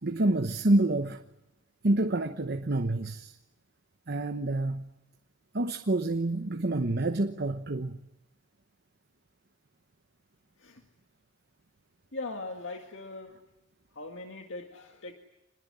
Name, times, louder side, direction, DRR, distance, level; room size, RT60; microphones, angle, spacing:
voice 1, 0.0-1.2 1.8-3.3 4.1-4.8 5.5-8.0, right 2 dB, 55° right, 1.0 m, -27 dB
voice 2, 12.1-13.4 14.0-15.1, left 2 dB, 80° left, 1.9 m, -40 dB
27.0 x 21.0 x 9.7 m
head